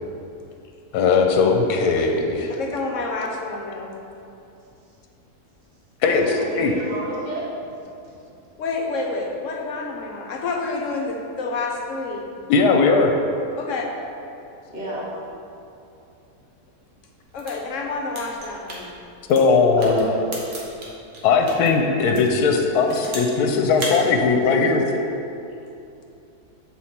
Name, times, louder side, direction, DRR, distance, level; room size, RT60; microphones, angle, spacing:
voice 1, 0.9-2.5 6.0-6.7 12.5-13.1 19.3-20.1 21.2-24.8, left 4 dB, 85° left, 3 dB, 1.1 m, -18 dB
voice 2, 2.5-4.0 8.6-12.3 13.6-13.8 17.3-18.9, left 3 dB, 60° left, 1 dB, 0.9 m, -28 dB
voice 3, 6.2-7.4 8.0-8.1 14.7-15.1 19.8-20.2, equal, 30° right, -8 dB, 1.7 m, -31 dB
sound 1, 17.3-21.7 22.1-23.4 23.7-24.0, right 2 dB, 85° right, 1.7 m, -35 dB
7.7 x 4.4 x 4.2 m, 2.7 s
omnidirectional pair, 1.7 m